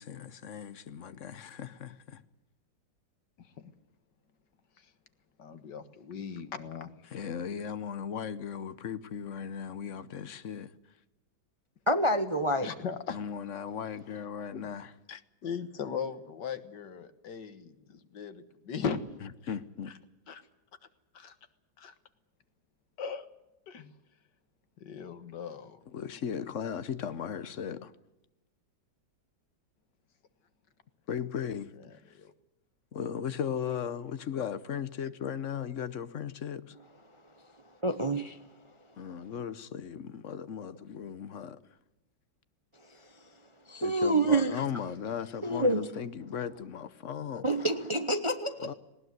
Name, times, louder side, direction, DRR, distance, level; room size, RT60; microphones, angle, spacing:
voice 1, 0.0-2.2 7.1-10.7 13.1-15.2 19.5-20.0 25.9-27.9 31.1-31.7 32.1-32.2 32.9-36.7 39.0-41.6 43.8-47.5 48.6-48.7, left 8 dB, 50° left, 1.1 m, -37 dB
voice 2, 3.4-3.7 4.8-4.9 5.4-6.9 12.6-13.2 14.5-14.7 15.4-19.0 19.4-19.5 20.3-20.4 21.1-21.4 21.8-21.9 23.0-23.3 23.7-23.9 24.8-25.8 32.1-32.3, left 6 dB, 75° left, 2.0 m, -38 dB
voice 3, 11.9-12.7 37.8-38.4 43.7-44.6 45.4-45.9 47.4-48.7, right 1 dB, 25° right, 0.7 m, -27 dB
19.0 x 19.0 x 9.4 m
omnidirectional pair, 1.9 m